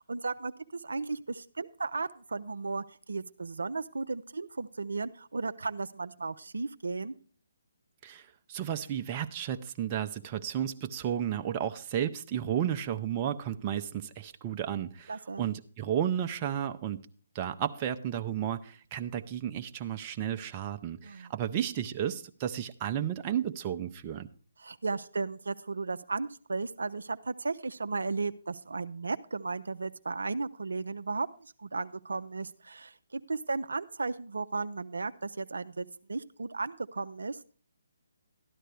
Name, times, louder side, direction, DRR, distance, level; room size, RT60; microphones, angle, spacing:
voice 1, 0.0-7.1 15.1-15.5 21.0-21.3 24.6-37.4, right 3 dB, 75° right, 10 dB, 0.5 m, -35 dB
voice 2, 8.0-17.0 17.3-24.3, right 10 dB, 25° right, 6 dB, 0.6 m, -33 dB
13.0 x 11.0 x 3.3 m, 0.42 s
figure-of-eight pair, 140°, 0 cm